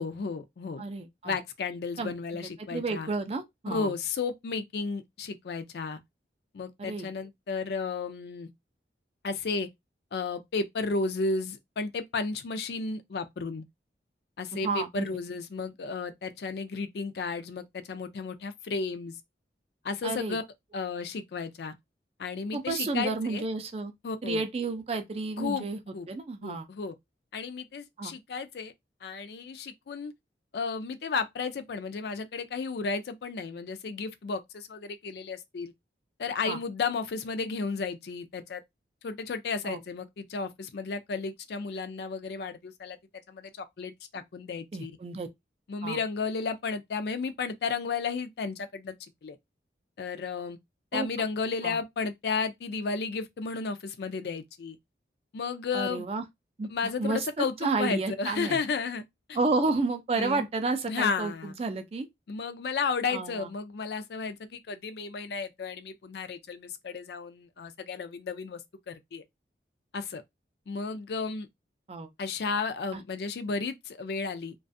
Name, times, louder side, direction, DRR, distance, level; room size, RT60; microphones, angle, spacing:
voice 1, 0.0-0.8 1.2-3.1 3.7-6.0 6.5-8.5 9.2-9.7 10.1-13.6 14.4-19.2 19.8-20.4 20.7-21.7 22.2-23.4 24.0-24.4 25.4-25.7 25.9-26.1 26.4-26.9 27.3-28.7 29.0-30.1 30.5-35.7 36.2-38.6 39.0-43.0 43.3-44.9 45.7-48.9 49.2-49.4 50.0-50.6 50.9-54.8 55.3-56.0 56.7-59.0 59.3-59.4 60.2-60.5 60.9-61.5 62.3-68.6 68.9-69.2 69.9-70.2 70.7-71.5 72.2-74.5, left 4 dB, 65° left, 0.4 m, -33 dB
voice 2, 0.8-1.4 2.0-2.1 2.7-3.9 6.8-7.1 14.5-15.1 20.0-20.4 22.5-23.9 24.2-25.8 26.1-26.7 28.0-28.1 36.5-36.6 39.6-39.8 44.7-45.3 45.8-46.0 50.9-51.1 51.6-51.8 55.7-56.2 56.6-56.7 57.0-58.6 59.3-62.1 63.1-63.5 71.9-72.1 72.9-73.0, right 3 dB, 35° right, 0.4 m, -31 dB
2.4 x 2.3 x 2.5 m
head